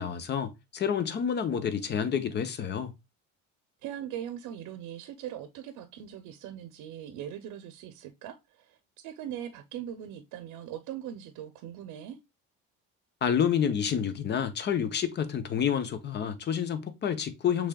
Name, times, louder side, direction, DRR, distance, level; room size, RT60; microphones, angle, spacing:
voice 1, 0.0-2.9 13.2-17.7, left 8 dB, 35° left, 0.7 m, -29 dB
voice 2, 3.8-12.2, right 10 dB, 75° right, 0.7 m, -40 dB
6.2 x 3.5 x 2.2 m
cardioid pair, 140°, 30 cm